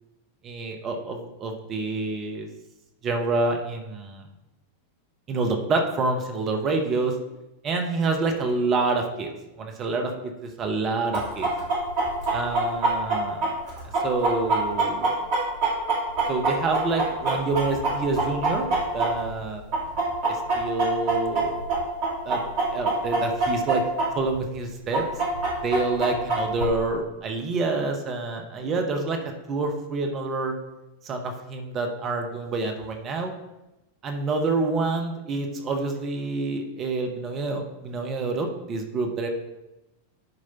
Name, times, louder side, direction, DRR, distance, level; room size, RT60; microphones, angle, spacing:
voice 1, 0.4-2.5 3.0-4.2 5.3-7.1 7.6-9.3 9.6-11.5 12.3-13.4 14.0-15.2 16.3-18.7 18.9-19.6 20.3-21.5 22.3-22.4 22.7-23.8 24.1-25.1 25.6-29.2 29.5-30.5 31.0-33.3 34.0-39.3, right 3 dB, 30° right, 4 dB, 0.9 m, -27 dB
Chicken rooster, 11.1-19.4 19.7-24.1 24.3-24.4 24.9-26.6, right 3 dB, 45° right, 2.2 m, -24 dB
11.0 x 4.8 x 2.9 m, 0.96 s
figure-of-eight pair, 90°, 0 cm